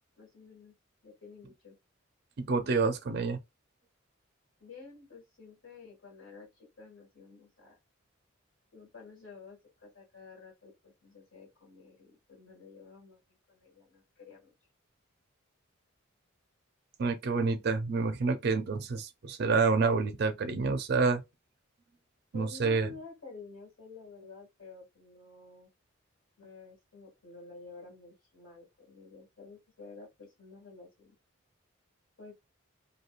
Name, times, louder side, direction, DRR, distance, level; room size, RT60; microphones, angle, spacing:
voice 1, 0.2-0.7 1.0-1.8 4.6-7.8 8.7-13.2 13.5-14.5 22.3-25.7 26.4-31.1 32.2-32.3, left 4 dB, 75° left, 1.6 m, -51 dB
voice 2, 2.4-3.4 17.0-21.2 22.3-22.9, right 4 dB, 50° right, 0.4 m, -28 dB
2.9 x 2.6 x 2.4 m
head